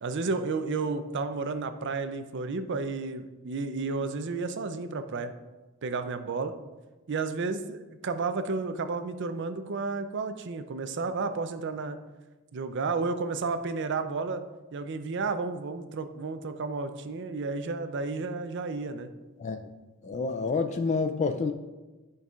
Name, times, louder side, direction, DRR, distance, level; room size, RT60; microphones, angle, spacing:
voice 1, 0.0-5.3 5.8-6.5 7.1-12.0 12.5-14.4 14.7-19.1, right 4 dB, 55° right, 9 dB, 0.5 m, -32 dB
voice 2, 20.0-21.5, left 4 dB, 35° left, 7 dB, 0.3 m, -28 dB
10.5 x 5.4 x 2.4 m, 1.2 s
head